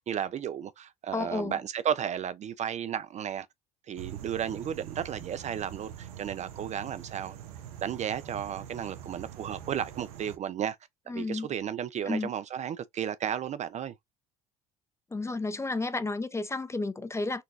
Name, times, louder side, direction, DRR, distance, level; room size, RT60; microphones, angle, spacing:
voice 1, 0.1-3.5 3.9-7.4 7.8-10.8 11.1-13.9, right 9 dB, 40° right, 0.4 m, -33 dB
voice 2, 1.1-1.6 11.1-11.5 12.1-12.3 15.1-17.4, left 3 dB, 15° left, 0.6 m, -32 dB
sound 1, 4.0-10.4, right 10 dB, 80° right, 0.7 m, -44 dB
3.9 x 2.2 x 2.5 m
hypercardioid pair, 65°, 19 cm